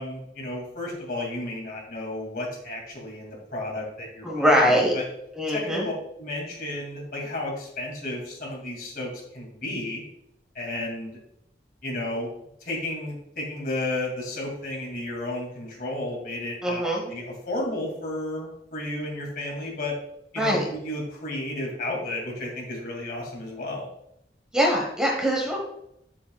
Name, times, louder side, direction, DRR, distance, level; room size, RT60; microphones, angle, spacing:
voice 1, 0.0-5.0 5.5-5.9 6.2-10.0 10.5-11.1 11.8-12.3 12.6-20.0 20.3-23.9, left 1 dB, 55° left, -1 dB, 2.4 m, -33 dB
voice 2, 4.2-4.9 5.3-5.9 16.6-17.0 20.4-20.6 24.5-25.6, equal, 5° right, -1 dB, 1.2 m, -22 dB
8.8 x 7.5 x 2.3 m, 0.77 s
head